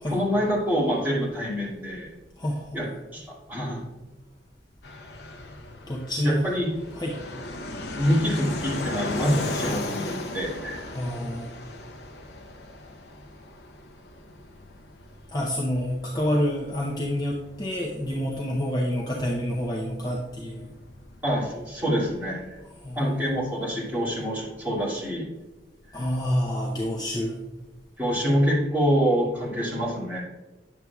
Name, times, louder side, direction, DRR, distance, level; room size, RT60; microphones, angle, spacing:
voice 1, 0.1-2.1 2.7-2.9 3.1-3.2 3.5-3.8 6.2-6.7 8.0-10.9 21.2-22.6 23.0-25.3 28.0-30.2, equal, 10° right, -8 dB, 2.4 m, -26 dB
voice 2, 2.4-2.8 5.9-6.4 7.0-7.2 10.9-11.5 15.3-20.7 22.8-23.0 25.9-27.4, equal, 20° left, -3 dB, 0.7 m, -28 dB
Fixed-wing aircraft airplane, 4.8-23.2, left 2 dB, 60° left, 0.7 m, -37 dB
9.4 x 7.4 x 2.3 m, 1.2 s
head